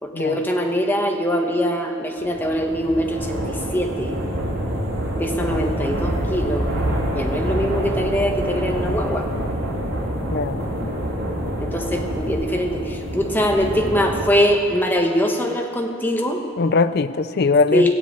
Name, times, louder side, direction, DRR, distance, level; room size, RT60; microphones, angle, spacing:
voice 1, 0.0-4.2 5.2-6.7 7.1-9.3 11.6-16.4 17.7-17.9, equal, 10° left, 2 dB, 1.0 m, -22 dB
sound 1, 2.2-14.3, right 1 dB, 75° right, 3.3 m, -26 dB
voice 2, 10.3-10.9 16.6-17.9, left 4 dB, 50° left, 13 dB, 0.4 m, -21 dB
15.0 x 7.7 x 8.6 m, 2.5 s
head